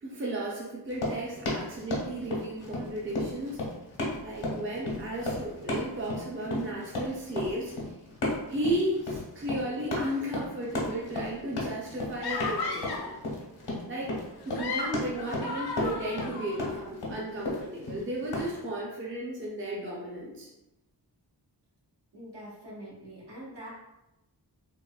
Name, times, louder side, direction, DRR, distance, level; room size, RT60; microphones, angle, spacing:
voice 1, 0.0-3.6 4.2-7.7 8.5-13.1 13.9-14.2 14.5-20.5, right 1 dB, 30° right, -4 dB, 0.6 m, -34 dB
Run, 0.9-18.5, left 2 dB, 85° left, 1.0 m, -34 dB
sound 1, 12.2-13.2 14.4-16.8, left 3 dB, 65° left, 0.5 m, -34 dB
voice 2, 22.1-23.7, right 1 dB, 75° right, -6 dB, 1.4 m, -44 dB
3.8 x 2.2 x 2.3 m, 0.92 s
wide cardioid pair, 95°, 41 cm